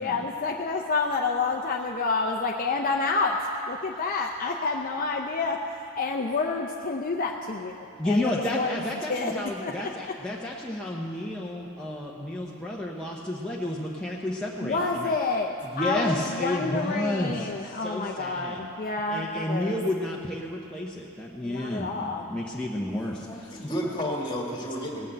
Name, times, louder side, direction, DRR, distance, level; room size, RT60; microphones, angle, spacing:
voice 1, 0.0-5.6 5.9-7.7 8.0-10.1 14.6-19.8 21.4-22.2, left 3 dB, 40° left, 1 dB, 0.6 m, -29 dB
voice 2, 8.0-15.1 15.6-18.6 19.1-23.7, left 1 dB, 5° left, -4 dB, 0.8 m, -31 dB
voice 3, 22.8-25.1, equal, 20° left, -1 dB, 1.9 m, -32 dB
18.0 x 6.5 x 7.7 m, 2.6 s
head